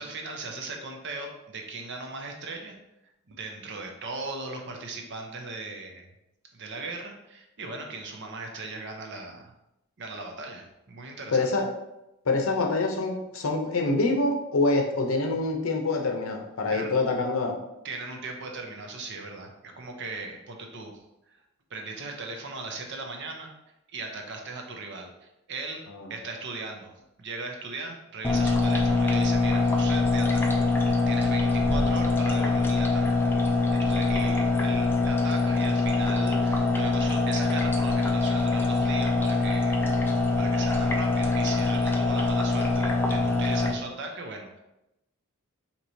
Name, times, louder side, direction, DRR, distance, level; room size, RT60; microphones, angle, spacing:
voice 1, 0.0-2.7 3.3-6.1 6.5-9.5 10.0-11.5 16.7-16.9 17.8-20.9 21.3-21.4 21.7-23.5 23.9-25.8 26.1-26.9 27.2-33.2 33.7-39.8 40.1-44.6, right 3 dB, 55° right, 2 dB, 0.6 m, -38 dB
voice 2, 11.3-11.7 12.3-17.6 25.9-26.1, left 3 dB, 65° left, 3 dB, 0.6 m, -25 dB
sound 1, 28.2-43.7, left 3 dB, 10° left, 0.3 m, -24 dB
4.5 x 2.9 x 2.7 m, 0.90 s
head